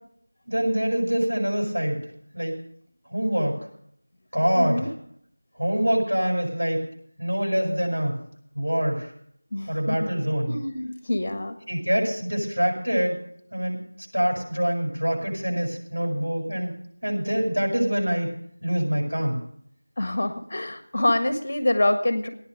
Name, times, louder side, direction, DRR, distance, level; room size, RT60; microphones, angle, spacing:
voice 1, 0.5-2.0 2.3-2.6 3.1-3.7 4.3-4.9 5.5-6.9 7.2-8.2 8.5-9.1 9.7-10.5 11.7-13.2 13.5-13.8 14.1-16.7 17.0-18.3 18.6-19.4, equal, 75° right, 0 dB, 7.9 m, -25 dB
voice 2, 4.5-4.9 9.5-10.1 10.4-11.6 20.0-22.3, left 1 dB, 35° left, 8 dB, 1.5 m, -26 dB
16.0 x 10.0 x 6.8 m, 0.66 s
figure-of-eight pair, 170°, 0 cm